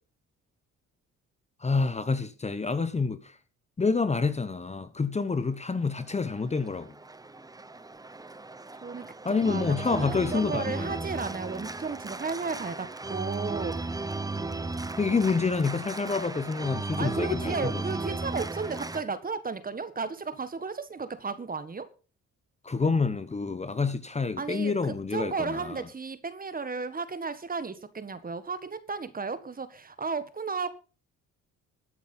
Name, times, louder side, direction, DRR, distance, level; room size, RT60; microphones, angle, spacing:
voice 1, 1.6-3.4 3.8-7.0 9.2-11.1 15.0-17.8 22.6-25.9, left 4 dB, 20° left, 1.0 m, -28 dB
Organ, 5.9-19.0, right 3 dB, 10° right, 0.8 m, -36 dB
voice 2, 8.8-13.8 17.0-21.9 24.4-30.7, right 4 dB, 30° right, 1.6 m, -34 dB
13.5 x 8.7 x 5.6 m
cardioid pair, 90°, 30 cm